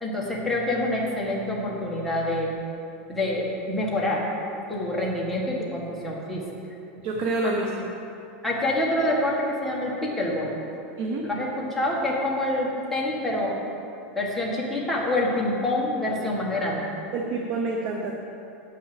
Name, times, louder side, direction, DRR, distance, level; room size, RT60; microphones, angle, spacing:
voice 1, 0.0-2.5 3.1-4.3 4.7-6.4 8.4-10.6 11.2-13.6 14.1-16.9, left 1 dB, ahead, -5 dB, 1.7 m, -26 dB
voice 2, 7.0-7.9 11.0-11.3 17.1-18.2, right 2 dB, 50° right, 0 dB, 1.0 m, -27 dB
9.2 x 5.7 x 7.6 m, 2.8 s
supercardioid pair, 155°, 6 cm